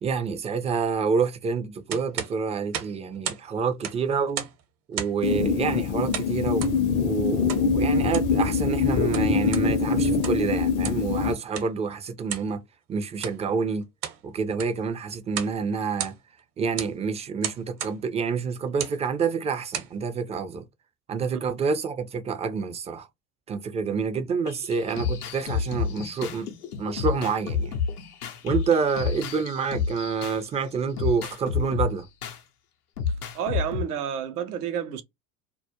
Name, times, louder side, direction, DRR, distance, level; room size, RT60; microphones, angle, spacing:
voice 1, 0.0-4.5 4.9-12.6 12.9-13.9 14.2-16.1 16.6-20.6 21.1-23.1 23.5-26.5 26.8-27.7 28.4-32.1, right 5 dB, 15° right, 0.3 m, -28 dB
sound 1, 1.9-3.5 3.7-4.6 4.9-5.3 6.1-6.8 7.5-7.7 8.0-8.4 8.9-9.7 10.1-10.5 10.8-11.1 11.5-11.7 12.3-12.5 13.1-13.4 13.8-14.2 14.5-14.8 15.3-15.6 15.8-16.4 16.8-17.0 17.4-18.0 18.7-19.0 19.5-19.9, right 9 dB, 60° right, 0.9 m, -34 dB
sound 2, 5.2-11.3, left 5 dB, 45° left, 0.5 m, -24 dB
sound 3, 24.5-30.5 31.0-32.4 33.0-33.8, left 6 dB, 90° left, 0.6 m, -30 dB
voice 2, 33.1-35.0, right 9 dB, 85° right, 0.6 m, -30 dB
2.3 x 2.1 x 2.7 m
hypercardioid pair, 70°, 44 cm